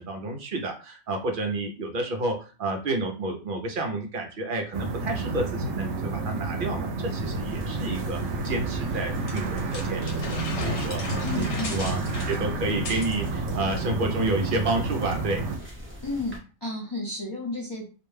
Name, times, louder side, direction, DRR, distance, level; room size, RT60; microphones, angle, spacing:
voice 1, 0.0-15.4, right 2 dB, 55° right, 3 dB, 0.7 m, -30 dB
sound 1, 4.7-15.6, right 3 dB, 85° right, 0.9 m, -30 dB
sound 2, 7.1-16.4, left 1 dB, 15° right, 0.4 m, -42 dB
sound 3, 9.3-13.2, left 3 dB, 75° left, 1.0 m, -36 dB
voice 2, 11.2-11.8 16.0-16.4 16.6-17.9, left 2 dB, 25° left, -5 dB, 0.6 m, -32 dB
2.5 x 2.2 x 3.2 m, 0.34 s
omnidirectional pair, 1.2 m